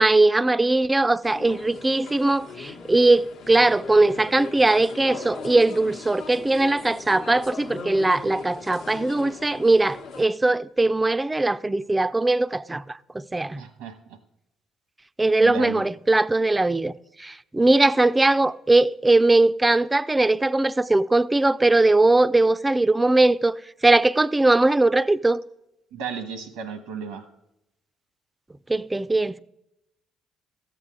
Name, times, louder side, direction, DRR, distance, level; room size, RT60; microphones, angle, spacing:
voice 1, 0.0-13.6 15.2-16.9 17.2-23.6 23.8-25.4 28.7-29.4, right 2 dB, 20° right, 0.4 m, -20 dB
sound 1, 1.2-10.3, left 5 dB, 70° left, 0.9 m, -39 dB
voice 2, 13.6-14.2 15.4-15.8 25.9-27.3, right 6 dB, 85° right, 1.1 m, -34 dB
13.5 x 8.2 x 3.7 m
supercardioid pair, 60°, 0 cm